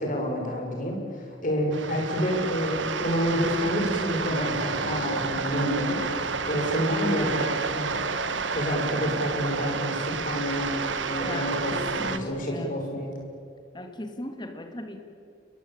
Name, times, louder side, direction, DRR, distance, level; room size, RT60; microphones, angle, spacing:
voice 1, 0.0-8.0 8.5-10.7 11.0-13.1, equal, 45° left, 1 dB, 6.3 m, -28 dB
sound 1, 1.7-12.2, right 5 dB, 85° right, 1.5 m, -30 dB
Wind instrument woodwind instrument, 5.8-12.0, equal, 75° left, 3.0 m, -42 dB
voice 2, 11.2-12.8 13.7-15.0, left 1 dB, 25° left, 5 dB, 2.2 m, -37 dB
29.5 x 22.0 x 8.8 m, 2.4 s
head